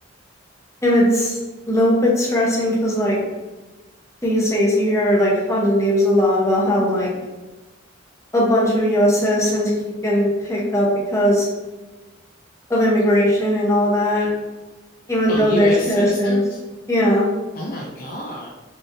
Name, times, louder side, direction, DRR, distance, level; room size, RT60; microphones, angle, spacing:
voice 1, 0.8-1.3 1.7-3.2 4.2-7.1 8.3-9.7 10.0-11.5 12.7-14.3 15.1-16.4 16.9-17.3, equal, 15° left, -5 dB, 0.8 m, -18 dB
voice 2, 15.3-16.6 17.5-18.5, left 1 dB, 45° left, -2 dB, 0.4 m, -29 dB
3.9 x 3.3 x 2.6 m, 1.1 s
head